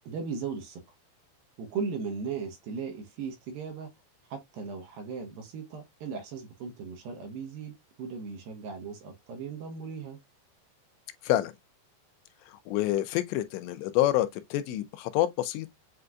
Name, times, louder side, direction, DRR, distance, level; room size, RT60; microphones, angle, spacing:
voice 1, 0.0-0.8 1.6-3.9 4.3-10.2, right 5 dB, 75° right, 2.2 m, -37 dB
voice 2, 12.5-15.7, left 14 dB, 85° left, 2.8 m, -27 dB
7.6 x 2.6 x 2.2 m
omnidirectional pair, 5.1 m